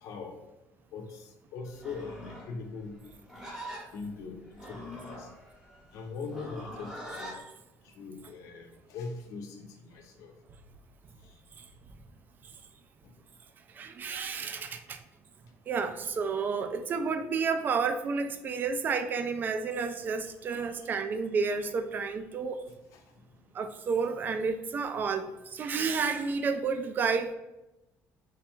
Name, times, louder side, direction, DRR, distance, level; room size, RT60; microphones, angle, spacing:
voice 1, 0.0-0.4 0.9-3.0 3.9-5.3 5.9-7.4 7.8-10.4 11.2-11.4 13.0-13.1 20.5-20.9 22.9-23.5, left 4 dB, 75° left, 4 dB, 0.6 m, -42 dB
Livestock farm animals working animals, 1.7-7.4, equal, 5° right, 0.8 m, -44 dB
voice 2, 13.7-15.0 15.7-22.6 23.5-27.3, right 5 dB, 35° right, 8 dB, 0.3 m, -31 dB
3.3 x 2.3 x 4.3 m, 0.97 s
cardioid pair, 140°, 6 cm